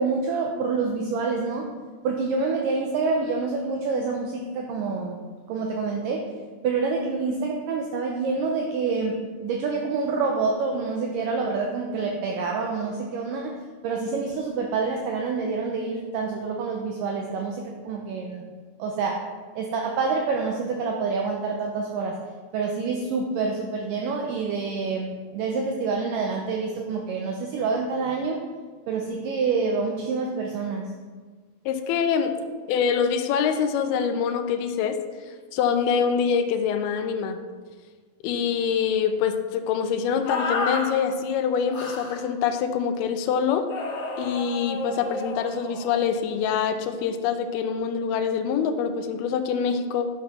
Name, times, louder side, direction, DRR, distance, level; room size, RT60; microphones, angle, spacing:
voice 1, 0.0-1.7 2.0-5.2 5.5-6.2 6.6-13.5 13.8-18.4 18.8-19.2 19.6-22.2 22.5-28.4 28.9-30.9, right 4 dB, 75° right, 1 dB, 2.2 m, -27 dB
voice 2, 31.7-32.4 32.7-35.0 35.5-37.4 38.2-43.7 44.2-50.1, left 7 dB, 80° left, 6 dB, 2.7 m, -25 dB
sound 1, 40.2-40.9 41.7-42.2 43.7-46.0, left 3 dB, 55° left, 2.9 m, -31 dB
12.5 x 5.8 x 6.0 m, 1.5 s
omnidirectional pair, 4.5 m